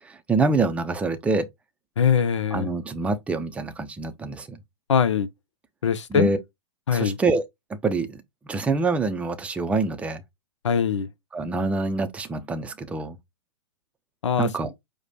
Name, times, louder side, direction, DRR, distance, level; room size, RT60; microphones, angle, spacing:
voice 1, 0.0-1.5 2.5-4.6 6.1-6.4 6.9-7.4 7.8-10.2 11.3-13.2 14.4-14.7, right 3 dB, 10° right, 0.5 m, -26 dB
voice 2, 2.0-2.7 4.9-5.3 5.8-6.3 6.9-7.2 10.6-11.1 14.2-14.5, left 7 dB, 75° left, 0.6 m, -22 dB
4.9 x 2.2 x 4.1 m
hypercardioid pair, 115°, 16 cm